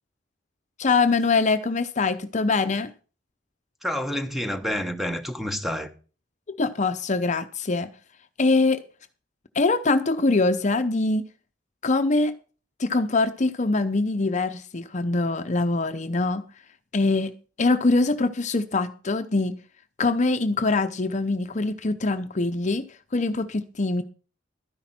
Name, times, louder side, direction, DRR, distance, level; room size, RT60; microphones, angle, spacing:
voice 1, 0.8-2.9 6.5-7.9 8.4-8.8 9.5-11.2 11.8-12.4 12.8-16.5 16.9-17.3 17.6-19.6 20.0-22.8 23.1-24.0, left 3 dB, 40° left, 0.7 m, -23 dB
voice 2, 3.8-5.9, equal, ahead, 1.1 m, -28 dB
12.5 x 10.5 x 4.3 m
head